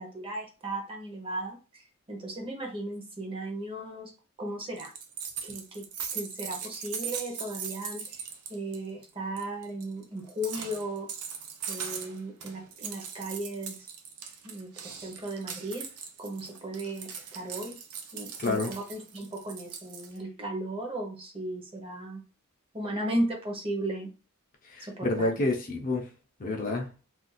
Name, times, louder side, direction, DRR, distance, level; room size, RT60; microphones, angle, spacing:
voice 1, 0.0-1.6 2.1-4.1 4.4-4.9 5.4-5.8 6.1-8.2 8.5-11.1 11.7-13.9 14.4-15.8 16.2-17.8 18.1-22.2 22.7-24.1 24.8-25.3, right 1 dB, 25° right, 1 dB, 0.7 m, -35 dB
sound 1, 4.8-8.8 9.0-9.1 9.4-20.2, right 7 dB, 85° right, 0.5 m, -40 dB
voice 2, 18.4-18.7 24.7-26.0 26.4-26.9, left 2 dB, 40° left, 2 dB, 0.6 m, -28 dB
2.5 x 2.3 x 3.9 m, 0.34 s
head